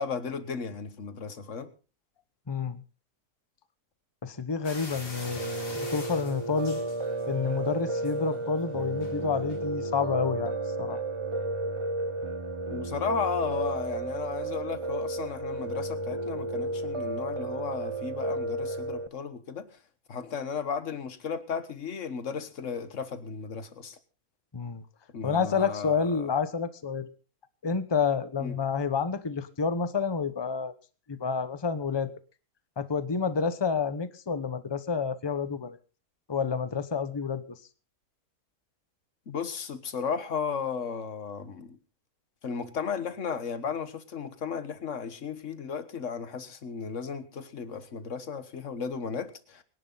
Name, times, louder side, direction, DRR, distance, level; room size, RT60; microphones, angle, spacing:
voice 1, 0.0-1.7 12.7-19.8 20.1-24.0 25.1-26.3 28.4-28.5 39.3-41.8 42.4-49.6, left 6 dB, 50° left, 1.7 m, -34 dB
voice 2, 2.5-2.8 4.2-5.4 5.8-6.8 7.3-11.0 24.5-24.8 25.2-27.1 27.6-30.7 31.1-32.1 32.8-35.8 36.3-37.4, left 5 dB, 20° left, 0.8 m, -29 dB
sound 1, 4.6-7.5 7.9-8.3 9.0-9.1 9.5-9.6, left 2 dB, 90° left, 4.0 m, -43 dB
Piano, 5.4-19.1, right 2 dB, 30° right, 0.6 m, -33 dB
24.0 x 11.0 x 4.0 m
omnidirectional pair, 1.7 m